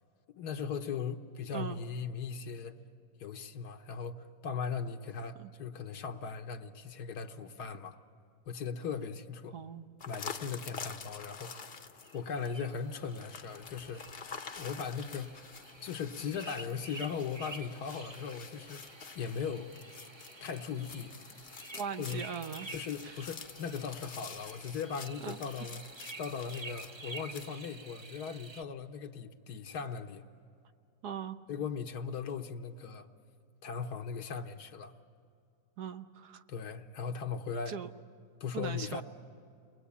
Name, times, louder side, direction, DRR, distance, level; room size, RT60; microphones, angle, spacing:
voice 1, 0.4-2.8 3.2-8.0 8.4-9.5 10.0-11.6 12.1-14.1 14.6-15.3 15.8-18.9 19.1-19.7 20.4-21.1 22.0-22.2 22.7-25.8 26.2-30.2 31.5-33.1 33.6-34.9 36.5-37.8 38.4-39.0, left 6 dB, 75° left, 5 dB, 1.5 m, -38 dB
voice 2, 9.5-9.9 21.7-22.7 23.0-23.1 25.2-25.4 31.0-31.4 35.8-36.4 37.7-37.9 38.5-39.0, right 7 dB, 75° right, 9 dB, 1.4 m, -39 dB
sound 1, 10.0-27.5, left 6 dB, 45° left, 0.9 m, -48 dB
sound 2, 12.0-28.6, right 3 dB, 40° right, 0.3 m, -50 dB
29.5 x 22.0 x 8.4 m, 2.3 s
omnidirectional pair, 1.7 m